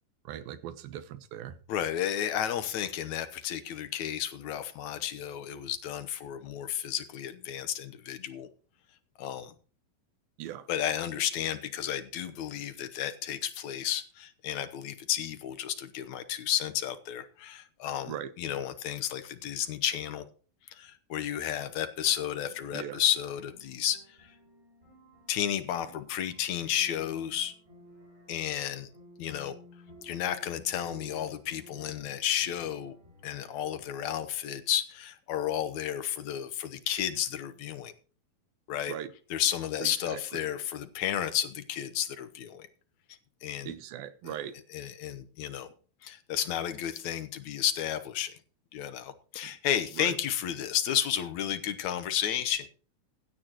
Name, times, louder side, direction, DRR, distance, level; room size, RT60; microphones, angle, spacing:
voice 1, 0.3-1.6 10.4-10.7 18.1-18.3 22.7-23.0 38.9-39.1 39.8-40.4 43.7-44.6 49.4-49.5 50.0-50.2, right 10 dB, 85° right, 2.9 m, -39 dB
voice 2, 1.7-8.5 9.2-9.5 10.7-20.2 20.7-24.0 25.3-27.5 28.3-28.9 29.2-29.6 30.0-33.0 33.2-37.9 38.7-38.9 39.3-42.7 43.4-43.7 44.2-44.3 44.7-45.7 46.0-48.3 48.7-52.7, left 10 dB, 70° left, 1.9 m, -32 dB
sound 1, 22.0-33.8, equal, 20° right, 5.8 m, -55 dB
16.0 x 11.0 x 3.0 m
omnidirectional pair, 4.1 m